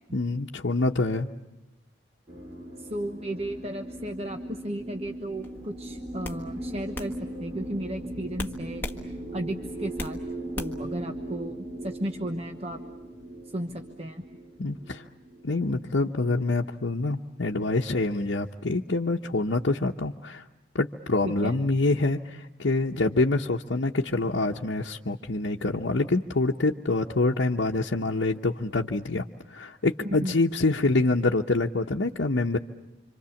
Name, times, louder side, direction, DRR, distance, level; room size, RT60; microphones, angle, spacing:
voice 1, 0.1-1.3 14.6-15.0 15.4-20.4 20.7-32.6, left 2 dB, 80° left, -2 dB, 1.0 m, -26 dB
sound 1, 2.3-16.8, right 1 dB, 20° right, 4.3 m, -39 dB
voice 2, 2.8-7.1 7.4-10.2 10.5-12.8 13.4-14.2 21.2-21.6 30.0-30.4, right 1 dB, 35° right, 5 dB, 1.1 m, -34 dB
sound 2, 5.4-5.7 6.2-6.4 6.9-7.1 8.4-9.0 9.4-10.2 10.5-10.9, left 2 dB, 10° left, 1.5 m, -36 dB
27.0 x 26.0 x 7.2 m, 0.98 s
head